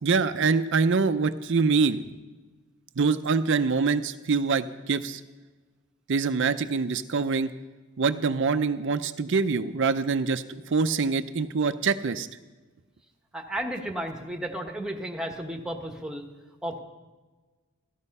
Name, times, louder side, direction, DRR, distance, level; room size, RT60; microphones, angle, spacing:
voice 1, 0.0-2.0 3.0-5.2 6.1-7.5 8.0-12.3, right 4 dB, 55° right, 11 dB, 0.5 m, -25 dB
voice 2, 13.3-16.2 16.6-16.8, right 1 dB, 5° right, 2 dB, 1.3 m, -33 dB
14.5 x 13.0 x 5.4 m, 1.3 s
head